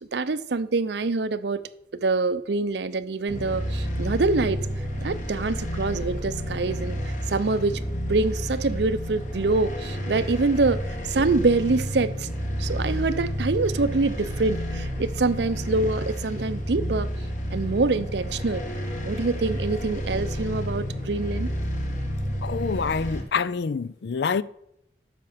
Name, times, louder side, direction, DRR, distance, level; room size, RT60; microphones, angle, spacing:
voice 1, 0.0-1.6 2.0-4.7 5.0-7.8 8.1-12.3 12.6-17.1 17.5-18.6 19.0-21.5, right 3 dB, 70° right, 0.6 m, -25 dB
sound 1, 3.3-23.2, equal, 45° left, 2.0 m, -30 dB
voice 2, 22.4-24.4, left 5 dB, 65° left, 0.4 m, -26 dB
9.7 x 6.6 x 6.6 m
head